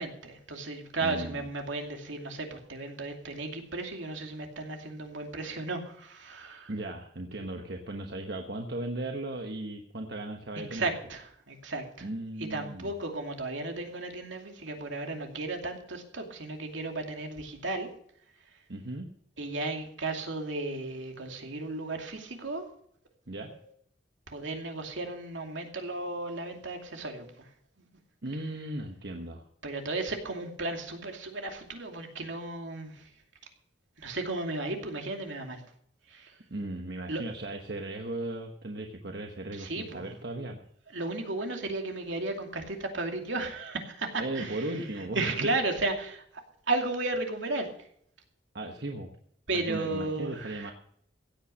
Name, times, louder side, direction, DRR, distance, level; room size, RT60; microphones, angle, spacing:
voice 1, 0.0-6.7 10.7-12.1 12.4-17.9 19.4-22.6 23.5-23.6 24.3-27.3 29.6-33.1 34.0-35.6 36.1-36.3 37.1-37.2 39.5-40.1 40.9-44.6 45.0-46.2 46.7-47.7 49.5-50.7, right 2 dB, 75° right, 3 dB, 2.6 m, -34 dB
voice 2, 1.0-1.4 6.7-10.9 12.0-12.9 18.7-19.1 23.3-23.5 28.2-29.4 36.5-40.6 44.2-45.5 48.5-49.1 49.5-50.7, right 2 dB, 55° right, 3 dB, 1.2 m, -37 dB
16.0 x 8.8 x 6.5 m, 0.66 s
head